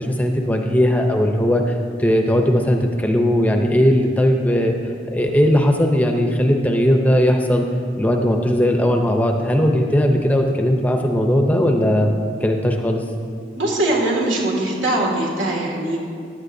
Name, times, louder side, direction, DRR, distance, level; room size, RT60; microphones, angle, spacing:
voice 1, 0.0-4.7 5.1-7.6 8.0-13.0, equal, 10° left, 3 dB, 0.6 m, -18 dB
voice 2, 13.6-16.1, right 1 dB, 85° right, -1 dB, 2.2 m, -21 dB
15.0 x 10.5 x 2.6 m, 2.3 s
head